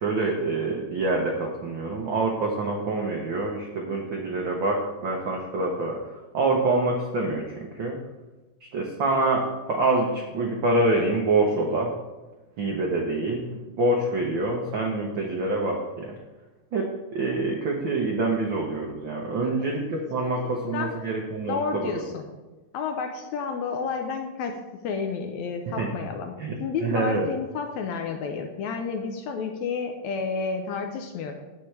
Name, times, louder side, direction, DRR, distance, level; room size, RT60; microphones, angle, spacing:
voice 1, 0.0-6.0 6.3-8.0 8.7-11.9 12.6-16.1 16.7-22.0 25.7-25.9 26.4-27.3, right 2 dB, 80° right, 0 dB, 1.0 m, -26 dB
voice 2, 19.9-21.0 21.5-22.3 22.7-24.6 24.8-26.3 26.6-31.3, left 5 dB, 75° left, 4 dB, 1.9 m, -31 dB
10.0 x 7.6 x 3.3 m, 1.2 s
omnidirectional pair, 3.5 m